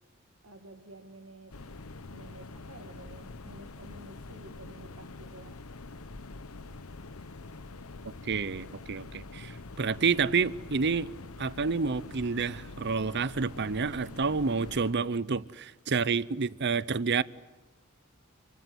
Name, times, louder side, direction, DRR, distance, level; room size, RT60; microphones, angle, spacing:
voice 1, 0.4-1.7 2.1-5.6, right 2 dB, 75° right, 2.1 m, -51 dB
sound 1, 1.5-14.9, left 3 dB, 90° left, 1.0 m, -45 dB
voice 2, 8.2-11.1 11.4-17.2, right 5 dB, 55° right, 0.8 m, -29 dB
29.0 x 24.0 x 7.9 m
head